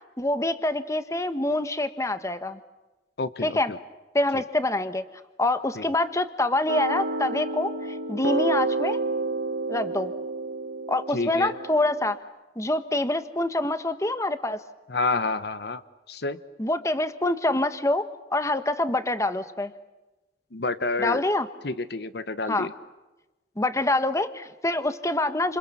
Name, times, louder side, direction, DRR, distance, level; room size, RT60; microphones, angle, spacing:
voice 1, 0.2-2.6 3.4-3.7 4.1-5.0 5.4-9.0 9.7-10.1 10.9-12.2 12.6-14.6 16.6-19.7 21.0-21.5 22.5-22.7 23.6-25.6, left 2 dB, 15° left, 10 dB, 1.3 m, -26 dB
voice 2, 3.2-3.6 11.1-11.5 14.9-15.8 16.1-16.4 20.5-21.2 21.6-22.7, left 3 dB, 60° left, 12 dB, 1.1 m, -28 dB
sound 1, 6.7-12.2, right 3 dB, 75° right, 1.5 m, -30 dB
30.0 x 28.0 x 7.1 m, 1.1 s
head